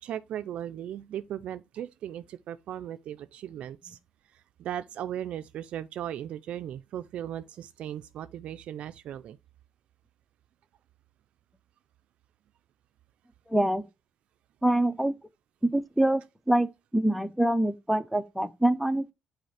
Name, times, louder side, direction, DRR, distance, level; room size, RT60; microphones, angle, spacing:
voice 1, 0.0-4.0 4.3-9.4, right 10 dB, 65° right, 0.4 m, -37 dB
voice 2, 13.5-13.8 14.6-15.1 15.6-16.2 16.5-19.1, right 1 dB, ahead, 0.5 m, -25 dB
7.9 x 4.2 x 3.2 m
cardioid pair, 140°, 2 cm